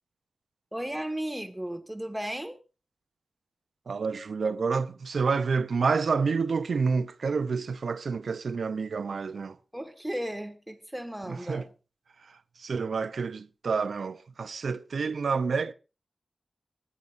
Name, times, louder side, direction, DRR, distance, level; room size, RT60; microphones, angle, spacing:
voice 1, 0.7-2.5 9.7-11.7, right 1 dB, 10° right, 1.6 m, -35 dB
voice 2, 3.9-9.6 11.3-11.6 12.6-15.7, right 5 dB, 85° right, 0.6 m, -28 dB
25.5 x 11.0 x 2.6 m
wide cardioid pair, 115°, 0 cm